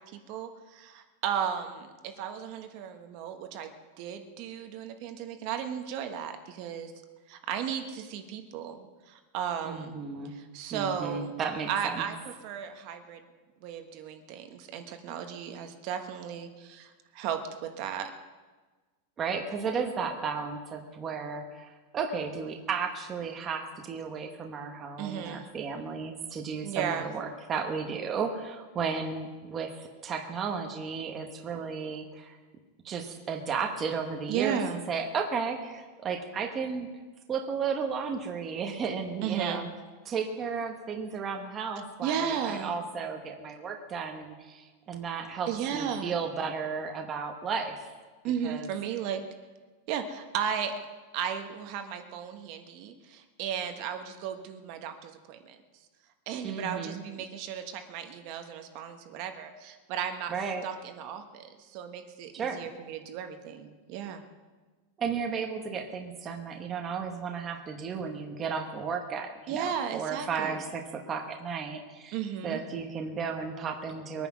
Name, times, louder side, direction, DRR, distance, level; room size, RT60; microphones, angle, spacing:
voice 1, 0.1-6.9 7.3-9.9 10.3-11.3 11.7-12.1 12.4-13.2 13.6-18.1 25.0-25.5 26.6-27.1 34.3-34.8 39.2-39.6 42.0-42.7 45.5-46.1 48.2-49.2 49.9-50.7 51.1-55.6 56.3-60.3 60.6-64.2 69.5-70.6 72.1-72.6, right 8 dB, 40° right, 6 dB, 1.2 m, -35 dB
voice 2, 9.6-10.3 10.7-12.1 19.2-32.4 32.8-34.6 34.9-36.9 37.3-39.7 40.0-47.7 48.4-48.7 56.4-57.0 60.3-60.6 62.3-62.7 65.0-72.2 72.4-74.3, right 5 dB, 20° right, 3 dB, 1.1 m, -34 dB
22.0 x 9.5 x 6.0 m, 1.3 s
supercardioid pair, 170°, 0 cm